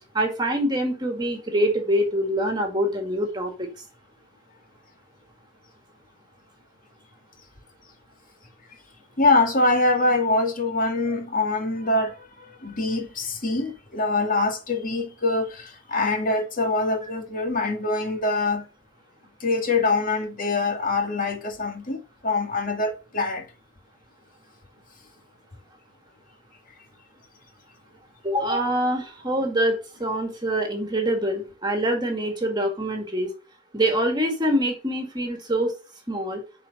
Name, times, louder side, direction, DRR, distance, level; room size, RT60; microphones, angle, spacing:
voice 1, 0.1-3.7 28.2-33.3 33.7-35.7 36.1-36.4, right 1 dB, 25° right, 2.1 m, -25 dB
voice 2, 9.2-18.6 19.4-23.4, left 2 dB, 50° left, 2.1 m, -24 dB
10.5 x 4.8 x 4.2 m
head